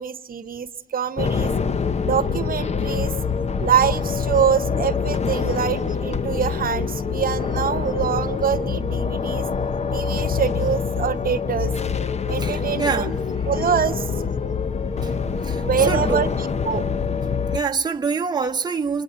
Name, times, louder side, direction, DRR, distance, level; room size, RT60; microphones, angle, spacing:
voice 1, 0.0-1.5 2.0-3.1 3.6-9.4 9.9-11.8 12.3-13.1 13.5-14.1 15.6-16.9, right 8 dB, 45° right, 1.2 m, -24 dB
sound 1, 1.2-17.6, left 5 dB, 35° left, 1.0 m, -25 dB
voice 2, 12.4-13.2 15.0-16.3 17.5-19.0, right 5 dB, 20° right, 1.0 m, -26 dB
28.5 x 22.5 x 8.1 m
cardioid pair, 90°, 20 cm